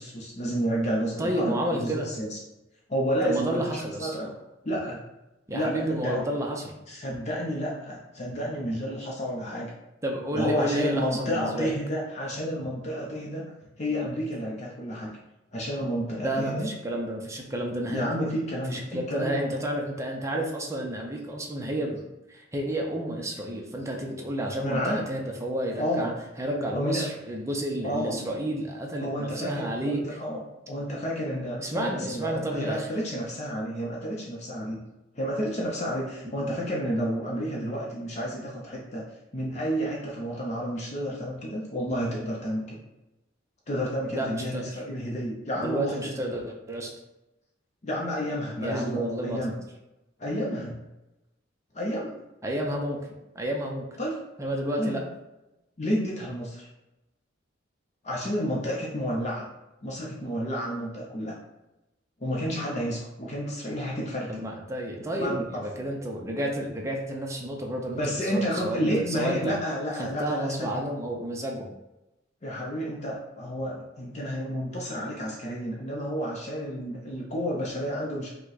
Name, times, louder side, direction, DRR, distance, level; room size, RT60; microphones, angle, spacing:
voice 1, 0.0-1.6 1.8-2.4 2.9-3.6 4.0-4.3 4.6-5.0 5.5-6.2 6.9-9.7 10.3-15.1 15.5-16.7 17.9-19.6 24.6-25.0 25.8-26.1 26.7-27.1 27.8-28.2 29.0-34.8 35.1-39.0 39.3-42.8 43.7-46.1 47.8-49.5 50.2-50.8 51.7-52.1 54.0-54.2 54.8-55.0 55.8-56.7 58.0-59.4 59.8-61.3 62.2-64.3 65.2-65.6 68.0-70.7 72.4-78.3, equal, 35° left, -3 dB, 0.7 m, -30 dB
voice 2, 1.2-2.2 3.2-4.2 5.5-6.8 10.0-11.7 16.2-18.1 18.7-22.0 22.3-26.1 26.4-30.2 31.6-32.9 44.1-44.8 45.5-46.9 48.6-49.5 52.4-53.1 53.3-53.8 54.4-55.1 64.3-69.6 70.0-71.7, right 1 dB, 15° right, 0 dB, 0.6 m, -31 dB
5.2 x 2.3 x 4.0 m, 0.94 s
head